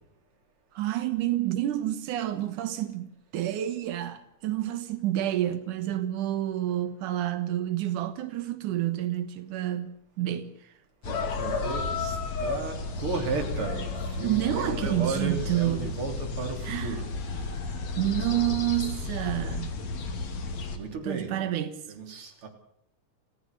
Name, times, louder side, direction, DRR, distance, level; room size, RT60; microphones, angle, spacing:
voice 1, 0.7-10.7 14.2-15.9 16.6-17.1 18.0-19.8 21.0-21.8, right 13 dB, 90° right, 2.8 m, -29 dB
sound 1, 11.0-20.8, left 3 dB, 60° left, 3.5 m, -33 dB
voice 2, 11.0-17.1 20.7-21.5 21.9-22.5, right 3 dB, 45° right, 4.0 m, -34 dB
29.0 x 16.0 x 6.7 m
omnidirectional pair, 3.5 m